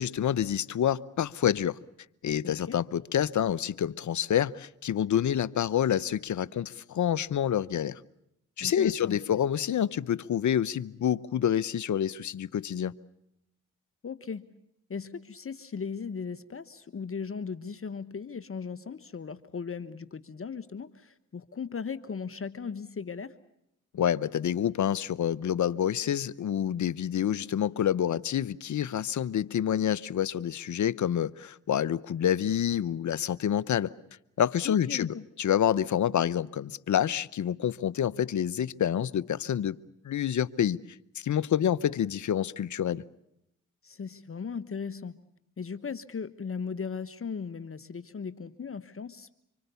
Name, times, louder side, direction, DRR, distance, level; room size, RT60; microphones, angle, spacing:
voice 1, 0.0-1.8 2.2-8.0 8.6-12.9 23.9-33.9 34.4-39.8 40.0-40.8 41.2-43.0, left 9 dB, 60° left, 0.9 m, -28 dB
voice 2, 2.4-2.8 8.6-9.4 14.0-14.5 14.9-23.4 34.6-35.3 43.8-45.1 45.6-49.3, left 6 dB, 40° left, 1.3 m, -37 dB
26.5 x 24.0 x 6.9 m
supercardioid pair, 50°, 33 cm